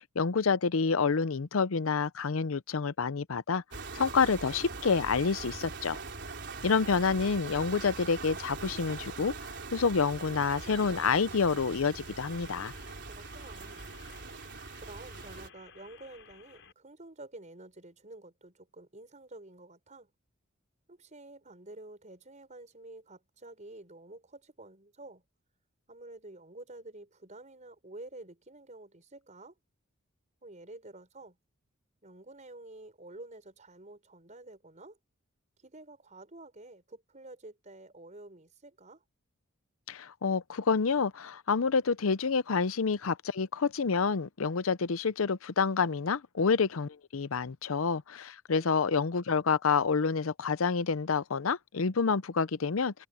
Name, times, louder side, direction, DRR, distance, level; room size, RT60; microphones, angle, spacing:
voice 1, 0.0-3.6 3.9-6.0 6.6-9.3 9.7-12.7 39.9-53.1, left 5 dB, 80° left, 0.7 m, -28 dB
sound 1, 3.7-15.5, right 4 dB, 60° right, 3.8 m, -42 dB
sound 2, 10.0-16.7, left 6 dB, 65° left, 6.3 m, -57 dB
voice 2, 13.1-13.8 14.9-20.1 20.9-25.2 25.9-29.5 30.4-31.4 32.0-35.0 35.6-39.0 48.5-48.7, right 2 dB, 35° right, 5.2 m, -49 dB
head